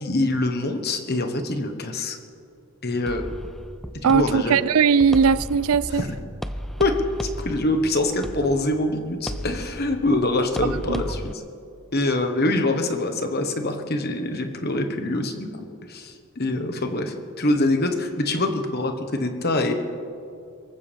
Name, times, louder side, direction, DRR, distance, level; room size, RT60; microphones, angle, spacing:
voice 1, 0.0-2.2 2.8-3.2 4.0-4.6 5.9-6.1 6.8-6.9 7.2-11.4 11.9-15.5 15.9-19.7, left 2 dB, 45° left, 1.3 m, -24 dB
sound 1, 3.1-11.3, equal, ahead, 0.3 m, -35 dB
voice 2, 4.0-6.0 10.9-11.0, right 6 dB, 80° right, 0.4 m, -19 dB
24.5 x 15.0 x 3.5 m
head